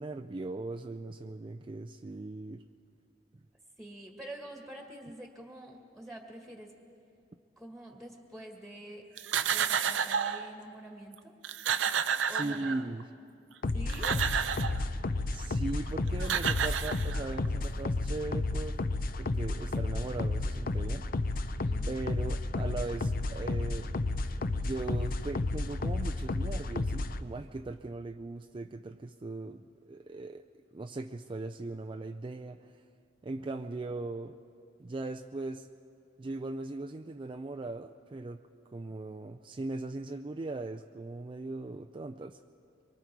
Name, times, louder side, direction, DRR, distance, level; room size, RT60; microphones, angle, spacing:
voice 1, 0.0-2.6 12.3-13.1 15.3-18.8 19.2-21.1 21.9-23.9 24.5-30.5 30.7-32.8 33.2-34.4 34.8-35.7 36.2-38.4 38.7-42.4, right 2 dB, 25° right, 6 dB, 0.4 m, -39 dB
voice 2, 3.8-6.7 7.6-9.0 9.4-11.3 12.2-12.8 13.7-14.2 21.6-21.9, right 1 dB, ahead, 1 dB, 1.9 m, -46 dB
sound 1, 9.2-10.5 11.1-11.2 11.4-13.0 13.7-14.8 15.9-16.0 16.2-17.5, right 7 dB, 80° right, 0.6 m, -30 dB
sound 2, 13.6-27.2, left 2 dB, 50° left, 0.6 m, -32 dB
24.0 x 23.5 x 4.6 m, 2.5 s
head